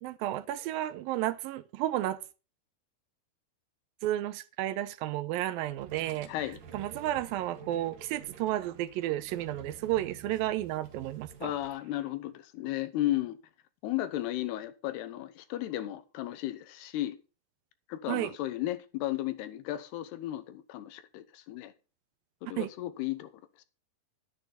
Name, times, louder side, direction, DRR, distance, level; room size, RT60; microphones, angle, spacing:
voice 1, 0.0-2.2 4.0-6.3 6.7-11.5 18.1-18.3 22.6-22.7, right 14 dB, 80° right, 2.2 m, -32 dB
sound 1, 5.6-11.7, right 6 dB, 60° right, 3.1 m, -50 dB
voice 2, 6.3-6.6 11.4-13.4 13.8-17.2 17.9-21.7 22.4-23.3 23.6-23.7, left 14 dB, 80° left, 2.9 m, -34 dB
11.5 x 10.5 x 4.1 m
omnidirectional pair, 4.7 m